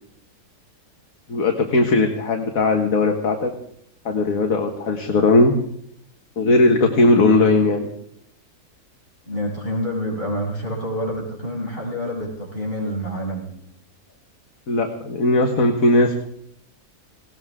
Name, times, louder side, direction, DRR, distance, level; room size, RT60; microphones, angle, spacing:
voice 1, 1.3-3.5 4.1-5.5 6.4-7.9 14.7-16.2, left 2 dB, 60° left, 3 dB, 1.9 m, -18 dB
voice 2, 9.2-13.5, equal, 35° left, -3 dB, 6.7 m, -27 dB
20.0 x 18.5 x 3.7 m, 0.71 s
omnidirectional pair, 1.7 m